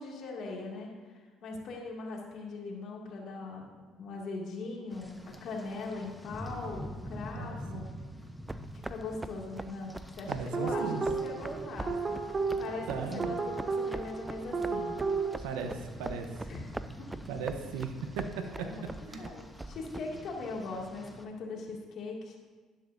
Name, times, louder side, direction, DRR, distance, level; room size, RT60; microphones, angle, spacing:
voice 1, 0.0-7.9 8.9-15.0 16.5-16.7 17.0-17.1 18.6-18.9 19.2-22.4, left 3 dB, 60° left, -1 dB, 2.3 m, -40 dB
Rain, 4.9-21.2, equal, 5° left, 1.0 m, -47 dB
sound 1, 8.5-20.0, right 2 dB, 15° right, 0.4 m, -43 dB
voice 2, 10.3-11.0 12.9-13.3 15.4-16.3 17.3-18.7 19.1-19.3, right 5 dB, 85° right, 5 dB, 1.0 m, -37 dB
sound 2, 10.5-15.3, right 4 dB, 35° right, 0.9 m, -33 dB
11.5 x 11.0 x 2.7 m, 1.4 s
supercardioid pair, 75°, 0 cm